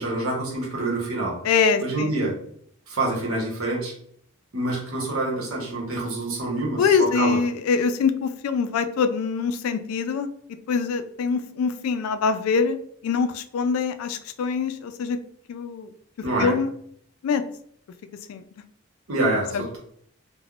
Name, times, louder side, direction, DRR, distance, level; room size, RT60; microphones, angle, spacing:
voice 1, 0.0-1.4 1.8-2.3 2.9-3.9 4.5-7.4 16.2-16.6 19.1-19.8, right 2 dB, 85° right, -2 dB, 1.0 m, -26 dB
voice 2, 1.4-2.1 6.8-10.3 10.7-12.8 13.0-15.2 15.5-15.9 16.4-16.7 17.2-17.4 18.3-18.4 19.5-19.8, left 5 dB, 90° left, 9 dB, 0.3 m, -24 dB
3.3 x 2.1 x 2.4 m, 0.65 s
head